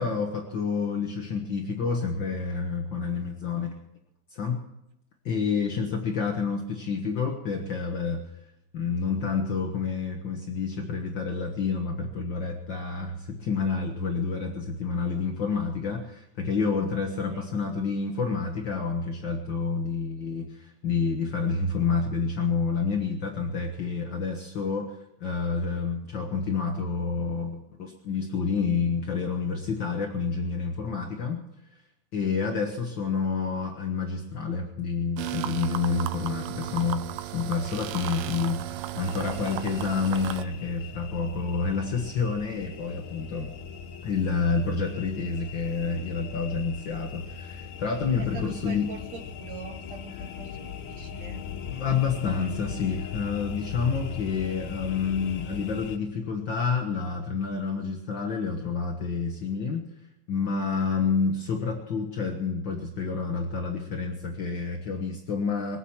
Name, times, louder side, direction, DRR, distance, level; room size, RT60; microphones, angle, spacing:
voice 1, 0.0-3.7 4.3-4.6 5.2-8.2 8.7-24.8 25.2-31.4 32.1-43.5 44.0-48.9 51.7-59.8 60.3-65.8, left 5 dB, 60° left, 2 dB, 1.2 m, -29 dB
sound 1, 35.2-40.4, right 14 dB, 80° right, 2.3 m, -35 dB
sound 2, 39.0-56.0, left 7 dB, 85° left, 3.0 m, -39 dB
voice 2, 48.2-51.5, right 7 dB, 60° right, 5 dB, 2.2 m, -43 dB
23.0 x 8.3 x 7.2 m, 0.86 s
omnidirectional pair, 4.3 m